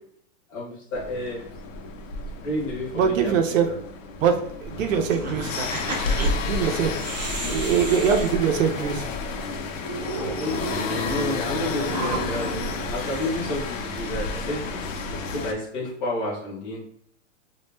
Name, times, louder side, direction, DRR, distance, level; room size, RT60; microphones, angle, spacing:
voice 1, 0.5-1.4 2.4-3.7 10.0-12.5 12.9-14.8 15.1-16.9, left 1 dB, 15° left, -6 dB, 0.6 m, -31 dB
sound 1, 0.9-15.5, left 3 dB, 80° left, 0.6 m, -31 dB
voice 2, 2.9-3.7 4.2-6.9 7.5-9.0, right 7 dB, 80° right, 5 dB, 0.6 m, -23 dB
sound 2, 5.0-9.1 9.5-9.6 9.8-14.0, right 3 dB, 35° right, 0.4 m, -33 dB
2.3 x 2.1 x 3.2 m, 0.66 s
supercardioid pair, 175°, 38 cm